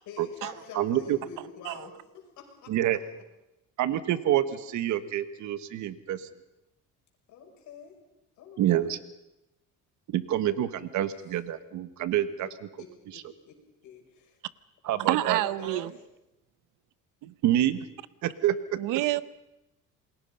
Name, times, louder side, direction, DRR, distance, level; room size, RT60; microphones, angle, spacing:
voice 1, 0.0-3.0 7.3-7.9 8.4-8.9 11.3-11.4 12.4-12.5 12.8-14.4 14.8-15.9 18.8-19.1, left 5 dB, 65° left, 6.2 m, -46 dB
voice 2, 0.7-1.2 2.7-3.0 3.8-6.3 8.6-9.0 10.1-12.5 14.8-15.4 17.4-17.8 18.2-18.6, right 12 dB, 65° right, 1.3 m, -27 dB
voice 3, 15.1-15.9 17.2-17.3 18.8-19.2, right 17 dB, 80° right, 0.8 m, -28 dB
28.5 x 21.5 x 5.5 m
cardioid pair, 165°, 32 cm